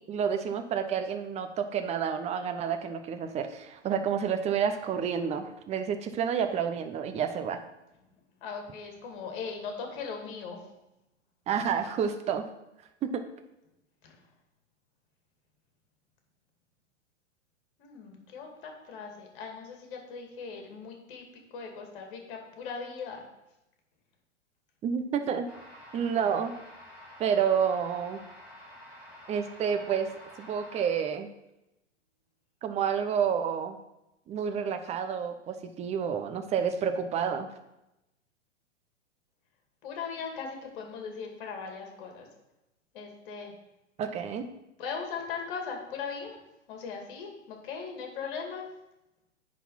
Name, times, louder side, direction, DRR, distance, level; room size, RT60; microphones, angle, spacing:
voice 1, 0.1-7.6 11.5-12.4 13.0-13.2 24.8-25.5 25.9-26.5 27.2-28.2 29.3-30.1 30.4-31.3 32.6-33.8 34.3-37.5 44.0-44.5, right 7 dB, 20° right, 8 dB, 0.7 m, -29 dB
voice 2, 8.4-10.7 14.0-14.2 17.8-23.3 39.8-42.3 42.9-43.5 44.8-46.4 46.7-48.7, left 5 dB, 45° left, 2 dB, 2.3 m, -39 dB
sound 1, 25.5-30.9, left 1 dB, 5° right, 3.0 m, -49 dB
9.9 x 4.2 x 5.7 m, 0.90 s
figure-of-eight pair, 105°, 36 cm